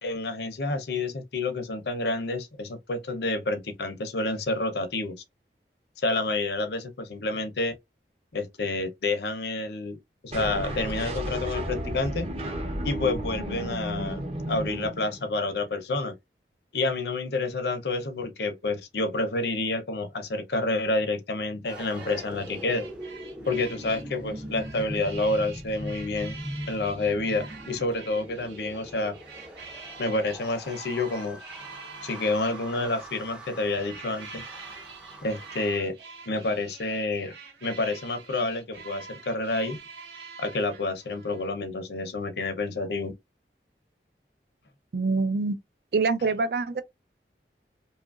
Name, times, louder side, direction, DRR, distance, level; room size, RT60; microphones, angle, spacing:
voice 1, 0.0-5.2 6.0-7.8 8.3-10.0 10.2-12.3 12.8-16.1 16.7-22.9 23.5-26.4 26.7-29.1 30.0-31.4 32.0-34.4 35.2-36.0 36.3-37.3 37.6-39.8 40.4-43.1, left 2 dB, 70° left, 0.6 m, -29 dB
sound 1, 10.3-15.5, equal, 35° right, 0.7 m, -33 dB
sound 2, 21.6-35.8, equal, 5° right, 0.5 m, -41 dB
sound 3, 21.7-33.1 33.7-41.5, right 5 dB, 80° right, 0.9 m, -46 dB
voice 2, 44.9-45.6 45.9-46.8, right 4 dB, 60° right, 0.5 m, -25 dB
2.8 x 2.4 x 2.4 m
head